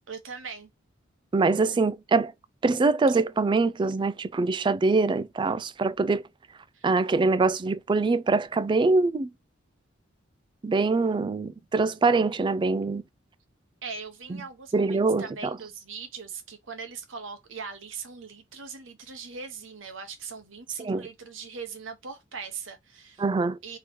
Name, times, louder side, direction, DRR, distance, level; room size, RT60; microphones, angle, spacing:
voice 1, 0.1-0.7 6.7-6.9 13.8-23.2 23.6-23.8, right 5 dB, 75° right, 1.0 m, -40 dB
voice 2, 1.3-2.3 2.6-6.2 6.8-9.3 10.6-13.0 14.7-15.6 20.8-21.1 23.2-23.6, right 3 dB, 25° right, 0.3 m, -24 dB
3.7 x 3.1 x 4.4 m
head